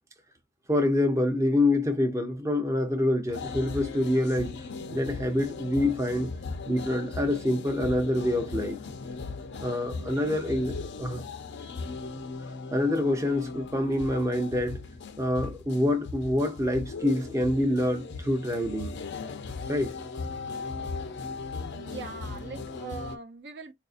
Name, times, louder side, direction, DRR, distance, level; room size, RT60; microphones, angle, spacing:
voice 1, 0.7-4.6 4.9-6.3 6.7-8.8 9.6-11.2 12.7-14.8 15.2-19.0 19.7-19.9, left 1 dB, 15° right, 0.6 m, -26 dB
sound 1, 3.3-23.2, left 4 dB, 50° left, 0.5 m, -38 dB
voice 2, 21.7-23.7, right 4 dB, 50° right, 0.7 m, -41 dB
4.8 x 2.6 x 2.4 m
head